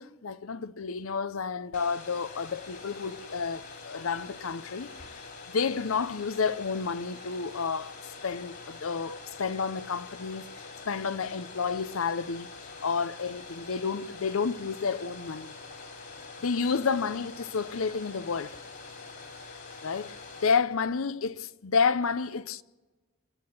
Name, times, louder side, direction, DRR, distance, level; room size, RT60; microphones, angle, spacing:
voice 1, 0.0-5.3 5.5-15.5 16.4-18.6 19.8-22.6, left 5 dB, 80° left, 0.7 m, -30 dB
Domestic sounds home sounds, 1.7-20.5, left 4 dB, 55° left, 3.7 m, -45 dB
28.0 x 10.5 x 8.7 m
head